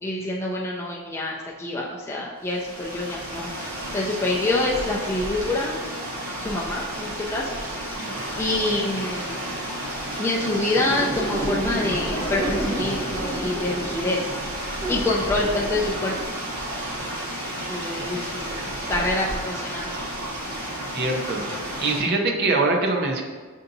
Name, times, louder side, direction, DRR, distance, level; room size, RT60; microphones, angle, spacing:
voice 1, 0.0-5.8 6.4-7.5 7.8-9.3 10.2-16.1 17.0-17.2 17.6-18.6 18.9-19.9, left 2 dB, 10° left, -4 dB, 0.3 m, -27 dB
sound 1, 2.4-22.0, right 1 dB, 65° right, 1.0 m, -32 dB
sound 2, 10.7-16.2, right 1 dB, 20° right, 1.3 m, -30 dB
voice 2, 20.9-21.4 21.8-23.2, right 3 dB, 50° right, 1 dB, 0.5 m, -23 dB
6.6 x 2.6 x 2.6 m, 1.5 s
head